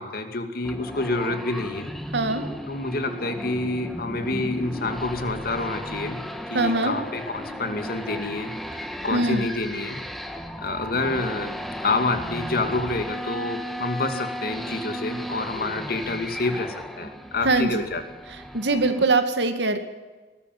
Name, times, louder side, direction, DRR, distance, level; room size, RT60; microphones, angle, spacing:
voice 1, 0.0-1.9 2.7-6.2 6.5-10.0 10.6-11.5 11.8-18.0, left 2 dB, 60° left, 7 dB, 2.5 m, -28 dB
sound 1, 0.6-19.0, equal, ahead, 1.5 m, -35 dB
voice 2, 2.1-2.5 6.5-6.9 9.1-9.5 17.4-17.8 18.5-19.8, right 3 dB, 85° right, 8 dB, 2.3 m, -22 dB
20.5 x 13.5 x 9.3 m, 1.3 s
head